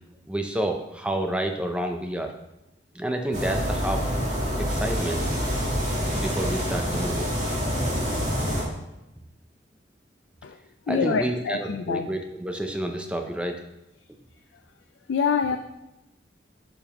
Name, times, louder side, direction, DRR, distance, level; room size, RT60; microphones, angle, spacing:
voice 1, 0.3-2.3 2.9-4.0 4.6-5.2 6.1-7.3 10.9-13.6, right 1 dB, 5° right, 4 dB, 0.6 m, -29 dB
sound 1, 3.3-8.6, equal, 40° right, 2.0 m, -26 dB
voice 2, 10.9-12.1 15.1-15.6, left 6 dB, 85° left, 7 dB, 0.4 m, -25 dB
8.6 x 5.0 x 3.0 m, 0.93 s
head